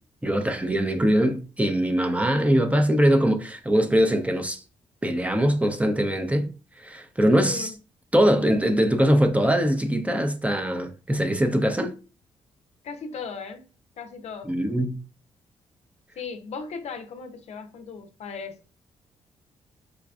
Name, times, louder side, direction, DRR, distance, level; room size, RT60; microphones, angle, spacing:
voice 1, 0.2-4.6 5.0-6.5 6.8-7.7 8.1-11.9 14.5-15.0, equal, 10° right, 0.6 m, -22 dB
voice 2, 7.4-7.7 12.8-13.7 14.0-14.5 16.2-18.7, left 5 dB, 70° left, 0.5 m, -37 dB
4.9 x 2.3 x 2.3 m
cardioid pair, 65°, 12 cm